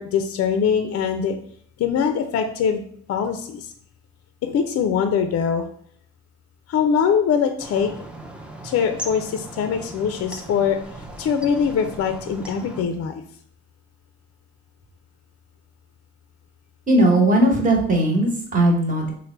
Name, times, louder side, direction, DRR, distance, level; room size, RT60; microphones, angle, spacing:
voice 1, 0.0-1.4 1.8-2.8 3.1-3.7 4.4-5.6 6.7-7.9 8.6-10.8 11.2-13.2, left 7 dB, 55° left, 7 dB, 0.4 m, -22 dB
sound 1, 7.6-12.9, right 1 dB, 5° right, 0.4 m, -38 dB
voice 2, 16.9-19.1, right 1 dB, 25° right, 0 dB, 1.1 m, -18 dB
3.2 x 2.2 x 4.2 m, 0.62 s
cardioid pair, 90°, 30 cm